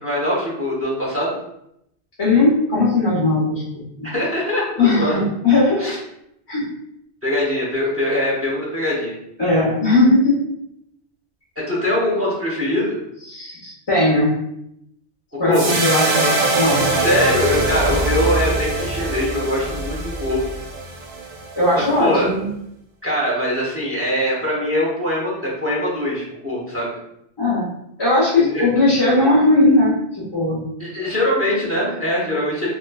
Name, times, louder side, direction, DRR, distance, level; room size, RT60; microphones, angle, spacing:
voice 1, 0.0-1.4 4.0-5.1 5.8-6.0 7.2-9.2 11.6-13.0 15.4-15.7 16.9-20.5 21.8-22.3 23.0-27.0 28.4-28.7 30.8-32.7, left 1 dB, 15° right, -5 dB, 0.6 m, -22 dB
voice 2, 2.2-4.1 4.8-5.8 6.5-6.7 9.4-10.4 13.3-14.3 15.4-16.8 17.9-18.2 21.6-22.5 27.4-27.7 28.0-30.6, left 2 dB, 30° left, -7 dB, 0.5 m, -18 dB
Swoosh FX Loud, 15.5-21.9, right 2 dB, 75° right, 0.9 m, -22 dB
3.1 x 2.1 x 2.2 m, 0.78 s
omnidirectional pair, 1.1 m